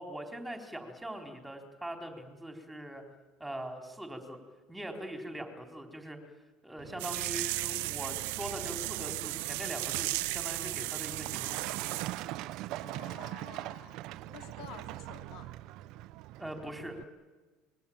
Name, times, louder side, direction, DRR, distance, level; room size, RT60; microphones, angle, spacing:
voice 1, 0.0-3.0 3.4-4.4 4.7-6.2 6.6-11.9 16.4-17.0, right 1 dB, 5° right, 4 dB, 4.2 m, -42 dB
Truck, 6.8-17.0, right 16 dB, 60° right, 0.8 m, -43 dB
sound 1, 7.0-12.2, right 21 dB, 85° right, 0.9 m, -35 dB
voice 2, 12.8-15.5, left 8 dB, 65° left, 6 dB, 3.1 m, -51 dB
27.5 x 22.0 x 8.9 m, 1.3 s
cardioid pair, 135°, 0 cm